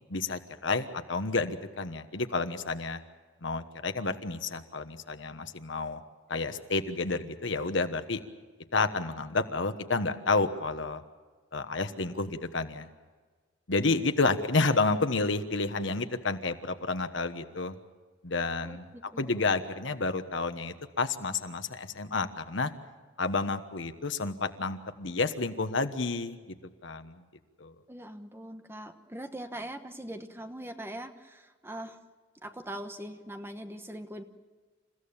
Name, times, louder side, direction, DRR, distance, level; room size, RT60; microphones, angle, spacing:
voice 1, 0.1-3.0 3.4-6.0 6.3-8.2 8.7-11.0 11.5-12.9 13.7-17.8 18.2-18.8 19.2-22.7 23.2-26.6 26.8-27.2 27.6-27.7, left 3 dB, 70° left, 9 dB, 1.3 m, -30 dB
voice 2, 18.6-19.5 27.9-32.0 32.4-34.2, right 1 dB, 10° right, 7 dB, 1.2 m, -42 dB
28.5 x 15.5 x 7.2 m, 1.4 s
head